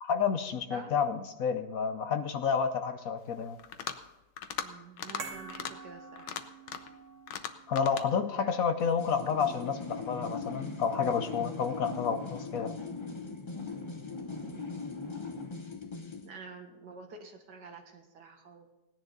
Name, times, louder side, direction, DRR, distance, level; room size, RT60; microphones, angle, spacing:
voice 1, 0.0-3.6 7.7-12.7, left 6 dB, 65° left, 9 dB, 1.0 m, -30 dB
sound 1, 3.6-4.1 4.4-4.7 5.0-5.2 5.5-5.7 6.2-6.9 7.3-8.1, left 8 dB, 85° left, 1.5 m, -38 dB
voice 2, 4.6-6.4 14.3-14.8 16.2-18.7, right 4 dB, 75° right, 4 dB, 2.1 m, -49 dB
sound 2, 5.2-11.6 11.9-12.0, right 4 dB, 50° right, 1.4 m, -49 dB
sound 3, 8.8-16.3, left 3 dB, 30° left, 0.5 m, -40 dB
17.5 x 10.5 x 3.9 m, 1.0 s
omnidirectional pair, 1.9 m